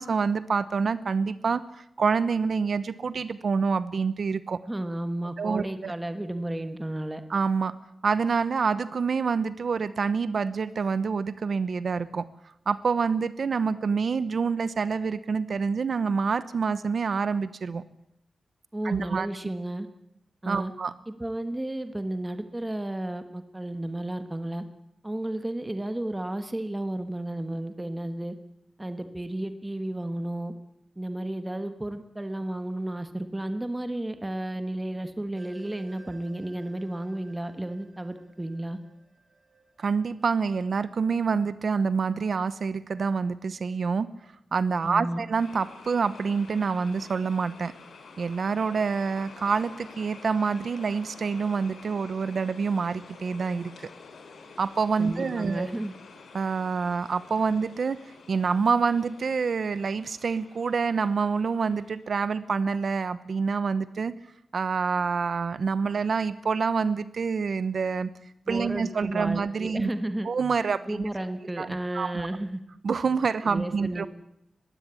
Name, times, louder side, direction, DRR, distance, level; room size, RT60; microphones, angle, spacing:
voice 1, 0.0-4.6 5.4-5.9 7.3-7.7 8.0-12.3 12.7-17.8 18.8-19.3 20.5-20.9 39.8-44.1 44.5-47.7 48.2-53.7 54.6-55.7 56.3-58.0 58.3-64.1 64.5-68.1 68.5-69.9 70.2-71.1 71.6-72.3 72.8-74.1, right 5 dB, 55° right, 15 dB, 0.9 m, -27 dB
voice 2, 4.7-7.2 18.7-19.9 20.4-20.7 21.1-24.6 25.0-28.3 28.8-30.5 31.0-38.8 44.8-45.2 55.0-55.9 68.5-70.3 70.9-72.6 73.4-74.1, right 1 dB, 15° right, 9 dB, 1.3 m, -32 dB
sound 1, 35.3-41.1, right 4 dB, 35° right, 2.9 m, -56 dB
sound 2, 45.4-62.4, left 4 dB, 85° left, 3.7 m, -49 dB
21.0 x 15.5 x 8.5 m, 0.78 s
wide cardioid pair, 145°, 0 cm